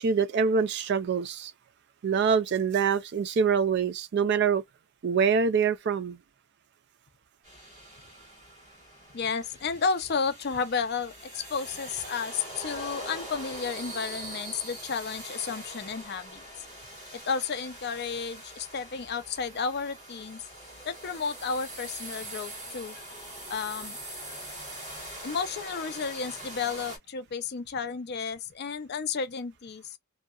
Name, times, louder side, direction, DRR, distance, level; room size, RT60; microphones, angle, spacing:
voice 1, 0.0-1.5 2.0-4.6 5.0-6.2, right 6 dB, 50° right, 0.3 m, -25 dB
sound 1, 7.4-27.0, right 1 dB, 30° right, 1.4 m, -43 dB
voice 2, 9.1-16.4 17.1-20.4 20.8-23.1 23.5-24.0 25.2-29.9, left 5 dB, 45° left, 0.5 m, -32 dB
2.7 x 2.2 x 2.4 m
head